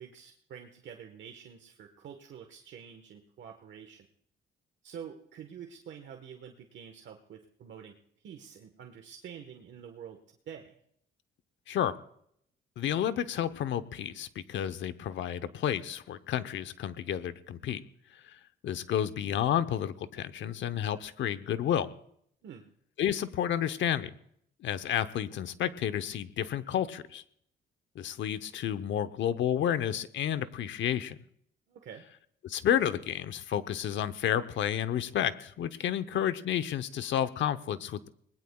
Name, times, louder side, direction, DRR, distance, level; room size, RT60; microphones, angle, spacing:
voice 1, 0.0-4.1 4.8-7.9 8.2-10.2 10.5-10.8 22.4-22.6 31.7-32.0, right 8 dB, 65° right, 3 dB, 1.3 m, -47 dB
voice 2, 12.8-17.8 18.3-21.9 23.0-24.1 24.6-27.2 27.9-31.2 32.4-38.1, left 10 dB, 70° left, 11 dB, 0.9 m, -31 dB
26.0 x 20.0 x 2.3 m, 0.68 s
cardioid pair, 90°, 20 cm